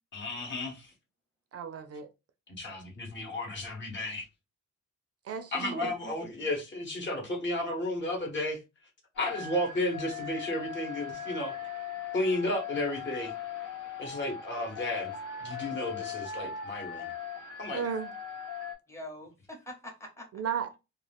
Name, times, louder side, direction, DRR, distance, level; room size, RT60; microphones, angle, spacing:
voice 1, 0.1-0.9 2.5-4.3 5.5-8.6 9.2-11.6 12.1-13.3 14.0-15.1 15.4-17.1 17.6-17.8, left 1 dB, 35° left, 1.0 m, -33 dB
voice 2, 1.5-2.1 5.3-5.9 17.7-18.1 20.3-20.8, right 7 dB, 50° right, 0.4 m, -34 dB
voice 3, 5.4-6.5 18.9-20.4, right 1 dB, 10° left, 0.8 m, -45 dB
sound 1, 9.2-18.8, left 7 dB, 80° left, 1.0 m, -39 dB
2.3 x 2.3 x 3.3 m
wide cardioid pair, 160°, 31 cm